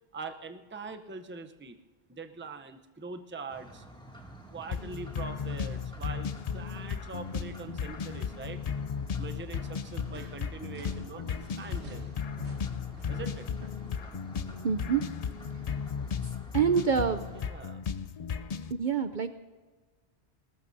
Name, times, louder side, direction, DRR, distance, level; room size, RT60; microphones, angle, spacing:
voice 1, 0.1-1.8 2.1-3.8 4.5-8.6 9.2-12.1 13.1-13.5 16.7-16.8 17.3-17.8, right 4 dB, 15° right, 7 dB, 0.6 m, -43 dB
sound 1, 3.5-17.4, equal, 5° left, 2.3 m, -50 dB
sound 2, 4.7-18.7, left 6 dB, 50° left, 0.5 m, -35 dB
sound 3, 4.9-6.1 6.5-6.9 7.1-13.7, right 1 dB, 80° right, 2.2 m, -51 dB
voice 2, 14.6-15.0 16.5-17.2 18.8-19.3, right 6 dB, 50° right, 9 dB, 0.7 m, -26 dB
20.5 x 19.0 x 2.7 m, 1.3 s
omnidirectional pair, 1.1 m